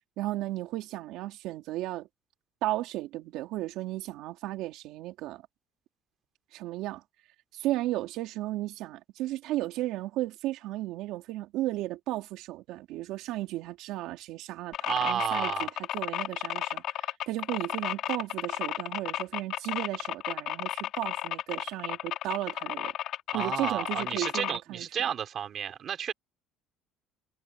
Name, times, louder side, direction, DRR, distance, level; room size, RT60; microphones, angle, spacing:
voice 1, 0.2-2.1 2.6-5.4 6.5-7.0 7.5-22.9 23.3-24.9, right 16 dB, 70° right, 3.6 m, -34 dB
sound 1, 14.7-24.6, left 12 dB, 60° left, 4.8 m, -33 dB
voice 2, 14.8-15.7 23.3-26.1, right 9 dB, 40° right, 3.8 m, -32 dB
cardioid pair, 135°, 0 cm